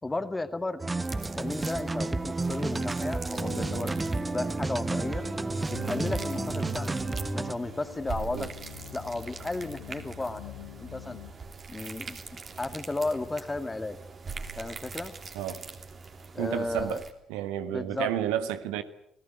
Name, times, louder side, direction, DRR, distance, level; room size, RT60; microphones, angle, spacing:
voice 1, 0.0-5.3 5.7-6.9 7.3-8.5 8.9-10.5 10.8-11.2 11.7-12.2 12.6-14.0 14.6-15.1 16.3-17.0 17.7-18.1, left 2 dB, 15° left, 10 dB, 2.2 m, -34 dB
sound 1, 0.8-7.5, right 3 dB, 20° right, 1.1 m, -31 dB
sound 2, 1.0-17.1, right 4 dB, 40° right, 3.2 m, -43 dB
sound 3, 3.3-11.3, left 6 dB, 75° left, 2.3 m, -45 dB
voice 2, 16.4-17.0 17.3-18.8, right 11 dB, 65° right, 11 dB, 1.4 m, -31 dB
28.0 x 18.5 x 8.0 m, 0.73 s
figure-of-eight pair, 50°, 0 cm